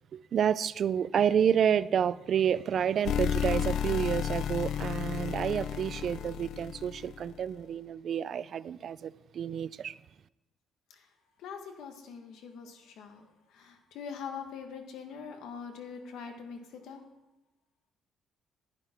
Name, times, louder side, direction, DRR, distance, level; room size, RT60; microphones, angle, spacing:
voice 1, 0.1-9.9, right 8 dB, 45° right, 0.3 m, -29 dB
sound 1, 3.0-7.3, left 9 dB, 60° left, 0.3 m, -32 dB
voice 2, 11.4-17.0, left 6 dB, 80° left, 1.5 m, -43 dB
11.0 x 10.5 x 4.4 m
cardioid pair, 175°, 0 cm